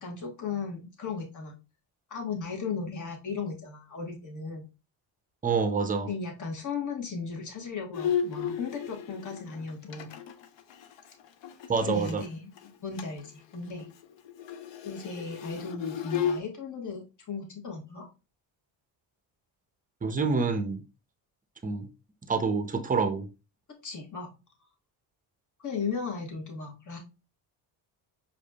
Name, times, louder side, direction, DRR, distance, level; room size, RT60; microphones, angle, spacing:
voice 1, 0.0-1.5 2.1-4.7 6.1-10.1 11.9-12.5 12.8-13.9 14.8-18.1 23.8-24.3 25.6-27.0, left 5 dB, 40° left, 1.3 m, -36 dB
voice 2, 5.4-6.1 11.7-12.2 20.0-20.8 21.6-21.9 22.2-23.3, right 4 dB, 20° right, 0.6 m, -27 dB
Bowed string instrument, 7.9-12.3 12.6-12.7 13.0-13.3 13.5-16.4, left 8 dB, 65° left, 0.6 m, -34 dB
4.8 x 2.6 x 2.3 m
cardioid pair, 75°, 47 cm